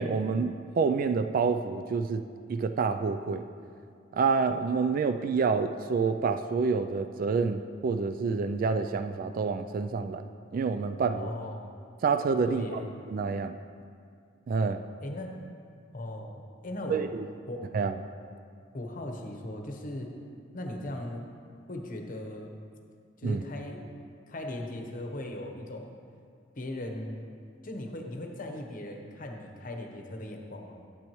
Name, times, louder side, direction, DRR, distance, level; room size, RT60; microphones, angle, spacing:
voice 1, 0.0-2.2 2.5-3.5 4.1-11.3 12.0-12.8 13.1-13.6 14.5-14.8 16.9-17.3 17.7-18.0 23.2-23.4, right 5 dB, 50° right, 9 dB, 0.3 m, -28 dB
voice 2, 11.1-11.6 12.5-12.9 15.0-15.4 15.9-17.0 17.5-17.7 18.7-20.1 20.5-21.3 21.7-22.5 23.2-23.8 24.3-26.0 26.6-27.2 27.6-30.8, left 1 dB, 45° left, 3 dB, 1.0 m, -38 dB
12.0 x 8.3 x 3.1 m, 2.3 s
head